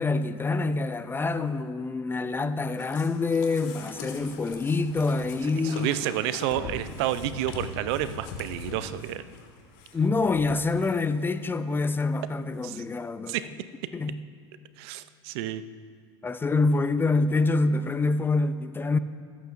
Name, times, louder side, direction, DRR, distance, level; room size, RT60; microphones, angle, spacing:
voice 1, 0.0-6.0 9.9-13.4 13.9-14.2 16.2-19.0, left 3 dB, 15° left, 0.4 m, -26 dB
sound 1, 2.8-11.1 11.4-11.5 12.0-12.1 12.3-12.4, left 4 dB, 60° left, 1.7 m, -41 dB
voice 2, 5.6-9.2 12.6-12.8 13.3-13.4 14.8-15.6, right 12 dB, 60° right, 0.5 m, -30 dB
19.5 x 8.2 x 2.6 m
hypercardioid pair, 95°, 15 cm